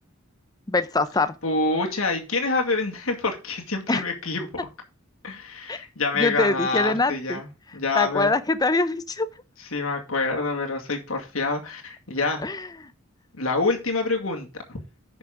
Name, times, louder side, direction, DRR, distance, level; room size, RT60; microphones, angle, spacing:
voice 1, 0.7-1.3 3.9-4.0 5.7-5.8 6.2-7.4 7.9-9.3 12.4-12.7, left 3 dB, 20° left, 0.6 m, -23 dB
voice 2, 1.4-4.5 5.2-7.5 7.7-8.3 9.7-12.4 13.4-14.8, left 3 dB, 70° left, 2.2 m, -26 dB
10.5 x 6.2 x 3.7 m
head